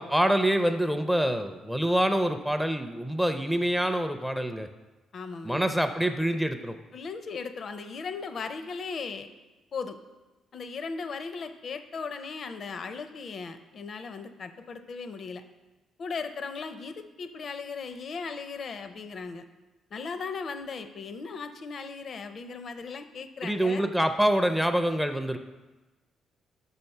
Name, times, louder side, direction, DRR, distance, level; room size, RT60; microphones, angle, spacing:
voice 1, 0.0-4.7 5.4-6.8 23.4-25.4, right 1 dB, ahead, 7 dB, 0.4 m, -26 dB
voice 2, 5.1-5.7 6.9-9.3 9.7-10.0 10.5-15.4 16.0-19.4 19.9-23.9, left 5 dB, 50° left, 9 dB, 0.5 m, -37 dB
5.6 x 4.3 x 5.3 m, 1.1 s
cardioid pair, 90°, 0 cm